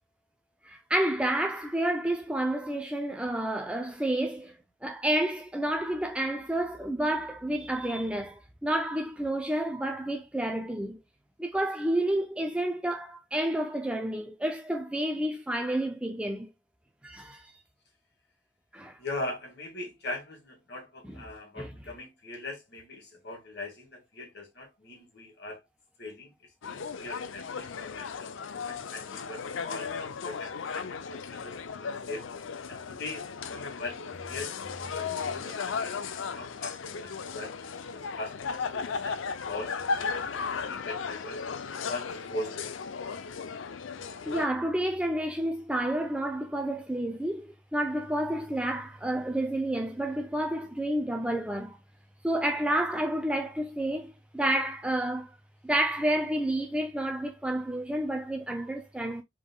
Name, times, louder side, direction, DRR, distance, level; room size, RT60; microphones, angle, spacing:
voice 1, 0.6-4.6 4.8-11.0 11.4-16.5 17.0-17.5 18.7-19.0 21.6-21.7 44.3-51.8 52.2-55.3 55.6-59.2, right 1 dB, 5° right, 0.4 m, -30 dB
voice 2, 19.0-25.6 26.0-26.3 26.6-32.2 32.7-34.0 34.3-34.5 34.9-37.5 37.9-41.4 41.9-42.7, left 2 dB, 55° left, 1.8 m, -41 dB
sound 1, 26.6-44.5, left 5 dB, 75° left, 0.5 m, -36 dB
5.1 x 3.6 x 2.2 m
head